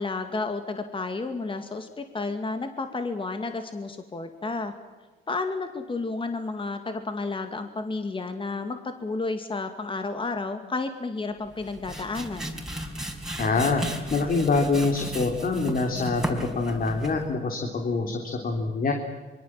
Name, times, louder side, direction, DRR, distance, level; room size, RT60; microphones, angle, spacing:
voice 1, 0.0-4.7 5.3-12.5, left 3 dB, 25° left, 7 dB, 2.2 m, -31 dB
sound 1, 11.5-17.3, right 1 dB, 5° right, 4.8 m, -35 dB
voice 2, 13.4-13.8 14.1-18.9, left 3 dB, 45° left, 3 dB, 3.4 m, -25 dB
25.0 x 23.5 x 7.6 m, 1.3 s
cardioid pair, 90°, 20 cm